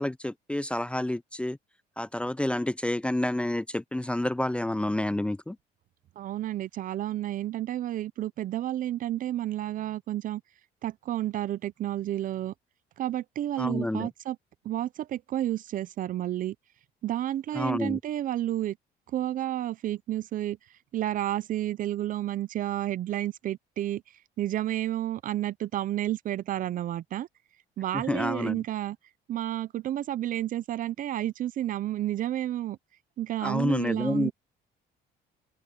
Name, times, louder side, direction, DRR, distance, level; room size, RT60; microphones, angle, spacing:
voice 1, 0.0-1.6 2.0-5.6 13.6-14.1 17.5-18.0 27.9-28.6 33.4-34.3, left 1 dB, 5° left, 0.5 m, -29 dB
voice 2, 6.2-10.4 10.8-12.5 13.0-14.4 14.6-16.6 17.0-18.8 19.1-20.6 20.9-24.0 24.4-27.3 27.8-29.0 29.3-32.8 33.2-34.3, right 13 dB, 55° right, 0.5 m, -31 dB
cardioid pair, 110°, 17 cm